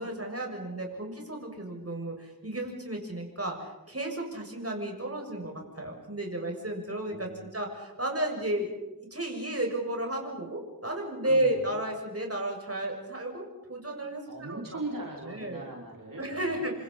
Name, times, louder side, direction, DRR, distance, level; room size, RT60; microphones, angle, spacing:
voice 1, 0.0-8.7 9.1-14.2 14.5-14.6 15.3-15.7 16.2-16.7, right 1 dB, 40° right, 1 dB, 7.1 m, -33 dB
voice 2, 7.1-7.5 11.2-11.8 14.3-16.7, right 2 dB, 70° right, -2 dB, 5.7 m, -40 dB
29.5 x 26.5 x 5.7 m, 0.99 s
wide cardioid pair, 40°, 35 cm